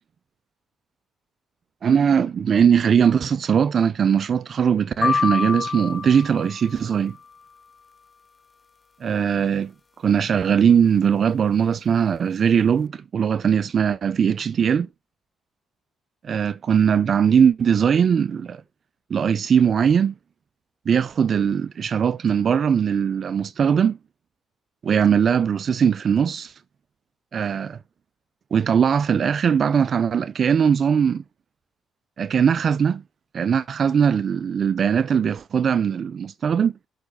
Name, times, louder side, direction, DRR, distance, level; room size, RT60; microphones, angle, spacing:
voice 1, 1.8-7.2 9.0-9.7 10.0-14.9 16.2-18.6 19.1-20.1 20.9-24.0 24.8-26.5 27.3-27.8 28.5-31.2 32.2-33.0 33.3-36.7, right 7 dB, 50° right, 0.3 m, -20 dB
sound 1, 5.0-7.2, left 5 dB, 30° left, 0.3 m, -26 dB
7.0 x 4.8 x 3.5 m
cardioid pair, 90°, 0 cm